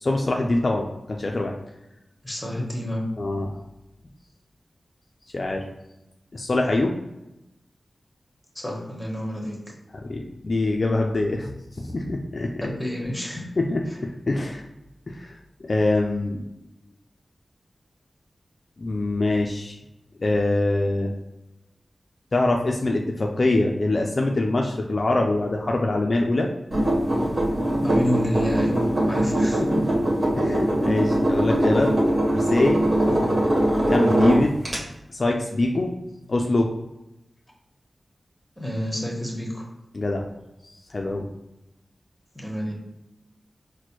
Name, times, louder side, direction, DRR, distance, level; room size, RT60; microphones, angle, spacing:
voice 1, 0.0-1.5 3.2-3.5 5.3-5.6 6.3-7.0 10.1-11.5 11.8-12.5 13.6-13.8 14.3-14.6 15.1-15.3 15.6-16.4 18.8-19.8 20.2-21.1 22.3-26.5 29.6-29.8 30.4-31.9 32.3-32.9 33.9-34.6 35.1-35.9 36.3-36.7 39.9-40.3 40.6-41.3, left 2 dB, 60° left, 1 dB, 0.4 m, -24 dB
voice 2, 2.2-3.0 8.5-9.6 12.6-13.5 27.8-29.6 30.5-30.6 33.1-33.3 38.6-39.7 42.3-42.7, equal, 10° left, -2 dB, 1.3 m, -29 dB
sound 1, 26.7-34.8, right 1 dB, 55° right, 1.2 m, -22 dB
4.2 x 2.2 x 3.0 m, 0.90 s
cardioid pair, 40°, 0 cm